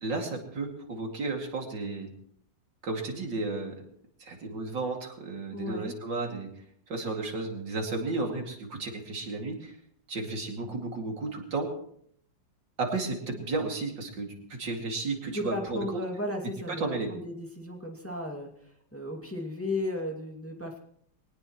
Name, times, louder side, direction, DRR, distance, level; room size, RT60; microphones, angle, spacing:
voice 1, 0.0-2.1 2.8-3.8 4.2-6.5 6.9-9.8 10.1-11.7 12.8-15.9 16.7-17.1, right 3 dB, 85° right, 2 dB, 3.2 m, -33 dB
voice 2, 5.5-5.9 15.3-20.8, left 1 dB, 5° left, 1 dB, 2.1 m, -35 dB
22.0 x 18.5 x 3.1 m, 0.66 s
omnidirectional pair, 1.9 m